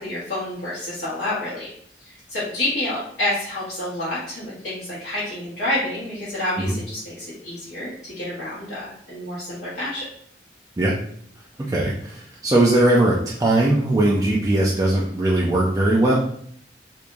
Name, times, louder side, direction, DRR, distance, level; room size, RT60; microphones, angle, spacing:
voice 1, 0.0-1.7 2.0-10.0, left 1 dB, 70° left, -11 dB, 1.2 m, -28 dB
voice 2, 11.7-16.1, right 1 dB, 20° right, -4 dB, 0.4 m, -19 dB
3.5 x 3.1 x 2.5 m, 0.64 s
head